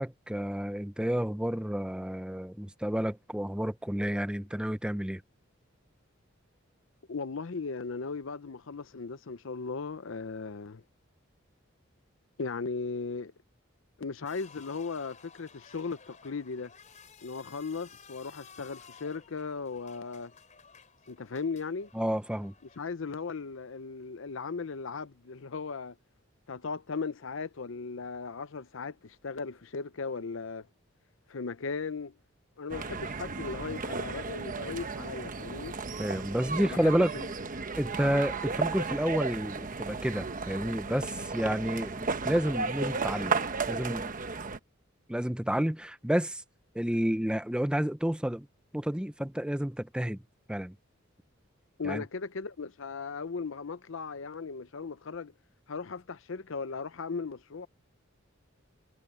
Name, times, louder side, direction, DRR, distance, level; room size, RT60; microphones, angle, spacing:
voice 1, 0.0-5.2 21.9-22.5 36.0-37.1 37.8-43.4 43.7-44.1 45.1-46.4 46.7-48.5 48.7-50.2 50.5-50.7 51.8-52.0, equal, 5° right, 0.7 m, -30 dB
voice 2, 7.1-10.8 12.4-13.3 14.0-16.7 17.2-20.3 21.1-21.9 22.8-26.0 26.5-30.7 31.3-32.1 32.6-35.8 36.6-37.3 51.8-55.3 55.7-57.7, left 4 dB, 70° left, 0.7 m, -37 dB
sound 1, 14.3-22.8, left 6 dB, 40° left, 4.3 m, -55 dB
sound 2, 32.7-44.6, right 4 dB, 40° right, 1.1 m, -34 dB
head